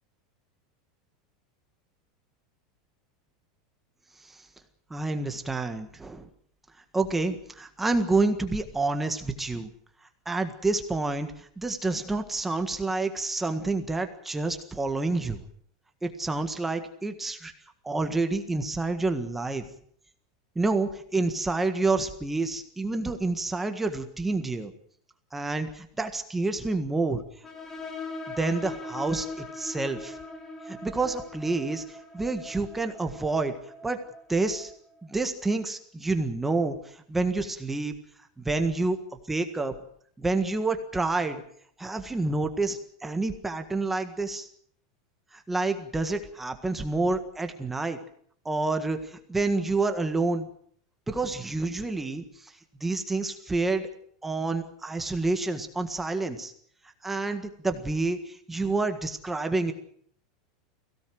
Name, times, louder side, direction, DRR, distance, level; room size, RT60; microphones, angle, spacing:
voice 1, 4.9-6.3 6.9-9.7 10.2-15.4 16.0-17.5 17.8-19.6 20.5-24.7 25.3-27.2 28.4-30.2 30.7-33.5 33.8-34.0 34.3-34.7 35.0-37.9 38.4-39.0 39.3-39.7 40.2-41.4 41.8-44.5 45.3-48.0 48.4-50.5 51.1-52.5 52.8-53.9 54.2-56.5 57.0-59.7, right 3 dB, 5° right, 7 dB, 1.7 m, -28 dB
sound 1, 27.4-34.7, left 2 dB, 15° left, 2.4 m, -41 dB
23.0 x 17.0 x 7.8 m, 0.62 s
supercardioid pair, 170°, 3 cm